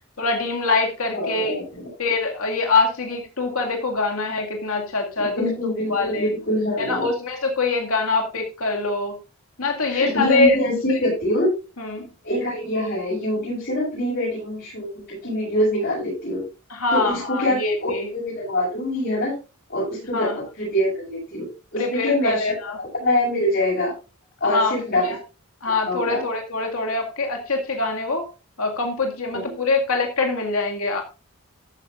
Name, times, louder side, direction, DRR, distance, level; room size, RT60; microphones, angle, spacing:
voice 1, 0.2-1.6 2.0-5.5 5.9-6.3 6.9-9.1 9.6-10.6 11.8-12.0 16.7-18.1 20.1-20.4 21.8-22.8 24.4-25.2 25.6-28.3 28.6-31.0, left 3 dB, 90° left, 3 dB, 2.2 m, -24 dB
voice 2, 1.1-1.9 5.2-7.1 9.9-11.5 12.2-16.5 16.9-19.4 19.7-22.5 22.8-23.9 24.4-25.2 25.8-26.2 29.4-29.5, left 1 dB, 50° left, -6 dB, 7.1 m, -24 dB
13.5 x 9.9 x 2.5 m, 0.31 s
head